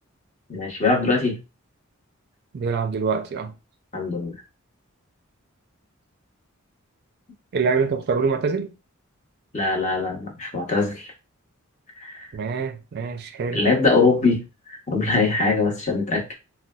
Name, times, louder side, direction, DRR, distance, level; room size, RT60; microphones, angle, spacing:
voice 1, 0.5-1.4 3.9-4.3 9.5-11.1 12.0-12.3 13.5-14.4 14.7-16.3, left 3 dB, 35° left, 0.9 m, -22 dB
voice 2, 2.5-3.5 7.5-8.7 12.3-13.6, right 5 dB, 50° right, 0.4 m, -25 dB
3.9 x 2.2 x 2.3 m
head